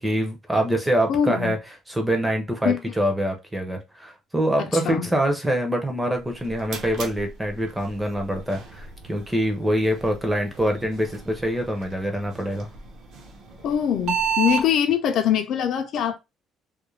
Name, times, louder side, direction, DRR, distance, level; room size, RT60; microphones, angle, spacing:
voice 1, 0.0-1.6 1.9-12.7, right 1 dB, 5° right, 0.5 m, -25 dB
voice 2, 1.1-1.6 2.6-2.8 4.7-5.1 13.6-16.2, left 9 dB, 50° left, 0.3 m, -23 dB
sound 1, 6.2-14.7, right 7 dB, 55° right, 0.6 m, -34 dB
2.4 x 2.1 x 3.1 m
cardioid pair, 180°, 0 cm